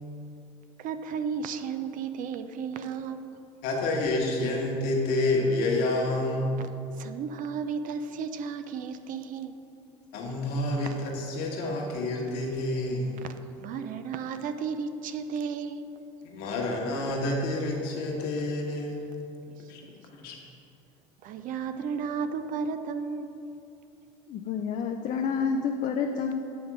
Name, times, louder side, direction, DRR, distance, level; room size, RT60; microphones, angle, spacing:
voice 1, 0.8-3.3 6.6-6.7 6.9-9.6 13.2-16.0 19.6-19.7 21.2-23.4, right 6 dB, 50° right, 9 dB, 0.5 m, -34 dB
voice 2, 3.6-6.5 10.1-13.1 16.2-19.0 19.7-19.8 20.2-20.4, left 2 dB, 65° left, -1 dB, 1.4 m, -28 dB
voice 3, 24.3-26.4, left 6 dB, 50° left, 4 dB, 0.5 m, -29 dB
8.5 x 3.6 x 6.0 m, 2.6 s
hypercardioid pair, 75°, 17 cm